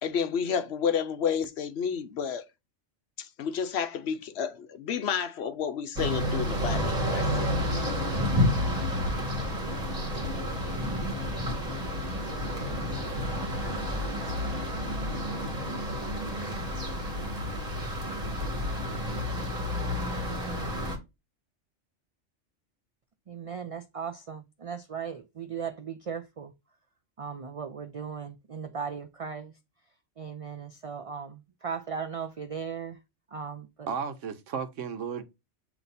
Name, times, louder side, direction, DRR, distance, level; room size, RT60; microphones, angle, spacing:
voice 1, 0.0-2.5 3.2-7.9, left 7 dB, 65° left, 0.9 m, -31 dB
sound 1, 6.0-21.0, left 1 dB, 30° right, 1.7 m, -30 dB
voice 2, 23.3-26.5 27.2-29.5 30.2-33.0 33.3-33.9, right 6 dB, 55° right, 0.3 m, -37 dB
voice 3, 33.9-35.2, right 6 dB, 80° right, 1.2 m, -34 dB
7.9 x 3.0 x 4.1 m
omnidirectional pair, 1.3 m